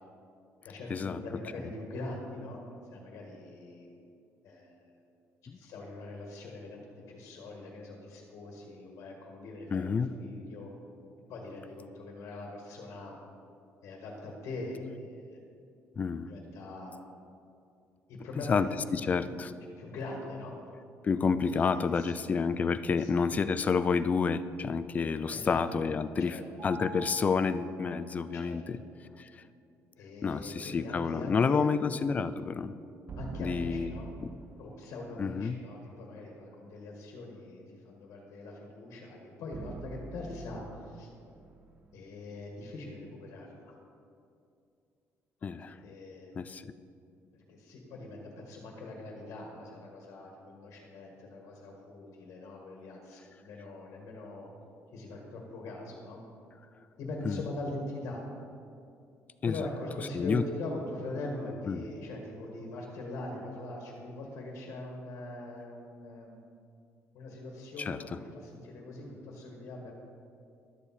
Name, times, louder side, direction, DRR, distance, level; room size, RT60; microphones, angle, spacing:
voice 1, 0.6-2.6 2.9-3.9 4.4-5.0 5.5-10.7 11.3-13.1 13.8-15.4 16.3-17.0 18.1-18.7 19.0-19.3 19.8-20.5 21.4-22.2 23.0-23.1 25.3-25.6 26.2-26.4 28.3-28.6 30.0-31.7 33.1-34.1 34.6-41.1 41.9-43.7 45.6-46.3 47.3-54.5 54.9-56.2 57.0-58.2 59.5-66.4 67.1-69.9, left 2 dB, 65° left, 0 dB, 1.7 m, -42 dB
voice 2, 9.7-10.1 16.0-16.3 18.5-18.7 18.9-19.5 21.0-28.8 29.2-29.3 30.2-32.7 33.4-33.9 34.2-34.3 35.2-35.6 45.4-45.8 46.4-46.7 57.3-57.4 59.4-59.7 60.1-60.4 61.7-61.8 67.8-68.0, left 5 dB, 30° left, 13 dB, 0.3 m, -29 dB
Mallet percussion, 26.6-28.6, right 5 dB, 50° right, 2.1 m, -46 dB
sound 1, 33.1-35.3 39.5-42.7, right 3 dB, 30° right, 0.6 m, -46 dB
11.5 x 6.9 x 4.3 m, 2.5 s
cardioid pair, 135°, 5 cm